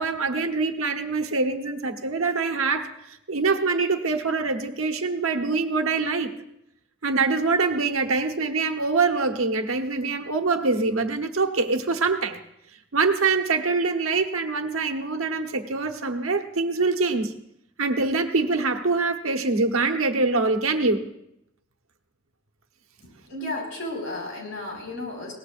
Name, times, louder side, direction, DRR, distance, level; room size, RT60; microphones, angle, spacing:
voice 1, 0.0-2.9 3.3-6.3 7.0-12.4 12.9-17.3 17.8-21.0, right 4 dB, 80° right, 7 dB, 1.2 m, -24 dB
voice 2, 23.0-25.3, left 2 dB, 65° left, -1 dB, 5.2 m, -33 dB
22.0 x 18.0 x 2.6 m, 0.79 s
head